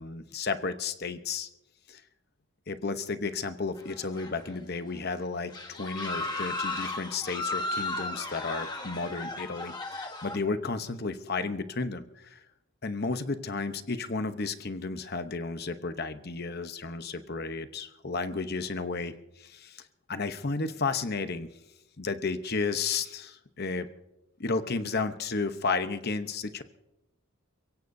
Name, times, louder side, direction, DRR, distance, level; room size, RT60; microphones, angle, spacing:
voice 1, 0.0-1.5 1.9-2.0 2.7-12.4 12.8-19.8 20.1-21.5 22.0-23.9 24.4-26.6, left 4 dB, 45° left, 10 dB, 0.9 m, -33 dB
sound 1, 3.8-4.6 4.9-5.1 5.5-10.4, left 2 dB, 20° left, 1.2 m, -35 dB
29.5 x 16.5 x 2.7 m, 0.91 s
head